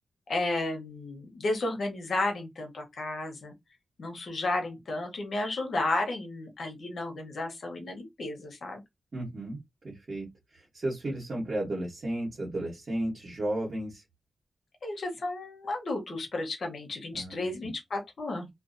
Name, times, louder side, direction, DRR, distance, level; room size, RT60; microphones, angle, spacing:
voice 1, 0.3-3.5 4.0-8.8 14.8-18.5, left 2 dB, 75° left, 0.9 m, -33 dB
voice 2, 9.1-9.6 9.8-10.3 10.7-14.0 17.1-17.7, right 1 dB, 60° right, 1.1 m, -33 dB
2.4 x 2.2 x 2.5 m
cardioid pair, 65°, 0 cm